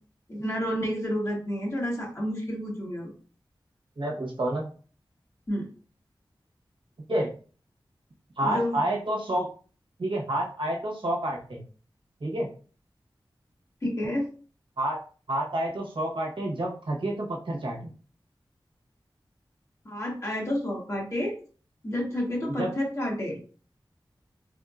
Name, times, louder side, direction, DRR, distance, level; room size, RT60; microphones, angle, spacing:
voice 1, 0.3-3.1 5.5-5.7 8.4-8.8 13.8-14.3 19.8-21.3 21.8-23.4, equal, 35° left, -3 dB, 1.7 m, -30 dB
voice 2, 4.0-4.7 7.1-7.3 8.4-9.5 10.0-11.6 12.2-12.5 14.8-15.0 15.3-17.8 22.6-22.7, right 1 dB, 70° right, -2 dB, 1.1 m, -29 dB
3.6 x 3.5 x 2.5 m, 0.40 s
wide cardioid pair, 45°, 9 cm